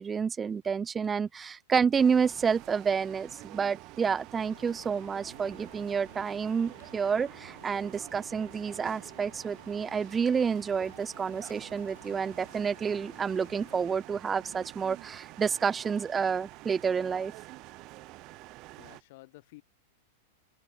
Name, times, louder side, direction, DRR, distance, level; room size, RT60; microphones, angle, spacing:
voice 1, 0.0-17.3, right 6 dB, 20° right, 0.4 m, -29 dB
sound 1, 2.0-19.0, right 21 dB, 45° right, 3.1 m, -48 dB
sound 2, 4.3-13.8, left 12 dB, 75° left, 4.0 m, -56 dB
voice 2, 18.8-19.6, left 21 dB, 60° left, 3.9 m, -52 dB
open air
hypercardioid pair, 125°, 0 cm